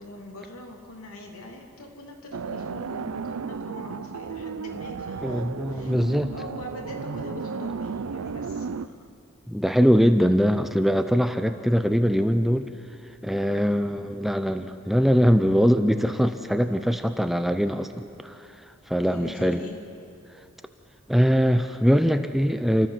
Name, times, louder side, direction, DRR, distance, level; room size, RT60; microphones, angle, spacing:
voice 1, 0.0-6.0 6.3-9.1 18.9-19.8, left 1 dB, 85° left, 1 dB, 3.0 m, -43 dB
sound 1, 2.3-8.9, right 5 dB, 85° right, 0.6 m, -34 dB
voice 2, 5.2-6.3 9.5-12.7 13.2-18.5 18.9-19.6 21.1-22.9, equal, ahead, 8 dB, 0.6 m, -22 dB
29.0 x 13.5 x 7.6 m, 2.5 s
head